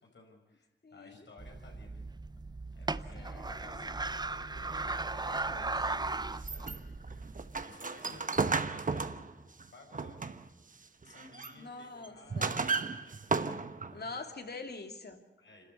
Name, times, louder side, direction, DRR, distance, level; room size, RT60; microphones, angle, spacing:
voice 1, 0.0-2.1 2.7-4.1 4.6-5.6 6.3-6.7 7.1-7.3 7.6-10.4 11.0-14.2 15.4-15.6, left 2 dB, 80° left, 1 dB, 5.9 m, -57 dB
voice 2, 0.8-1.3 3.1-4.0 5.1-5.7 11.6-12.5 13.9-15.2, left 3 dB, 60° left, 5 dB, 2.7 m, -45 dB
sound 1, 1.4-7.6, right 3 dB, 20° right, 0.6 m, -37 dB
sound 2, 6.3-10.6 11.0-11.6 12.0-14.0, right 4 dB, 45° right, 1.1 m, -34 dB
27.5 x 13.0 x 8.4 m, 1.0 s
cardioid pair, 65°, 19 cm